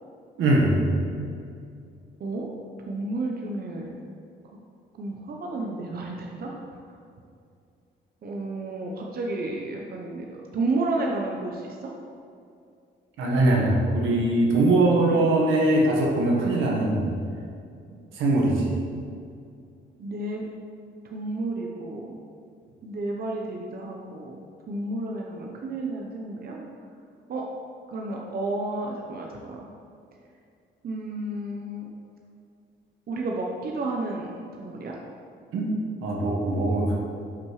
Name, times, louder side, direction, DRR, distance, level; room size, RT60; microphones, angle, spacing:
voice 1, 0.4-0.9 13.2-17.1 18.2-18.7 35.5-35.7 36.0-36.9, right 2 dB, 85° right, -2 dB, 1.3 m, -21 dB
voice 2, 2.2-2.5 2.9-4.0 4.4-4.6 5.0-6.5 8.2-11.8 20.0-20.4 21.0-22.2 22.8-24.4 24.7-26.7 27.3-27.4 27.9-29.7 30.8-31.9 33.1-34.3 34.6-35.0, right 2 dB, 50° right, 0 dB, 0.8 m, -31 dB
6.6 x 5.8 x 3.1 m, 2.4 s
cardioid pair, 90°, 20 cm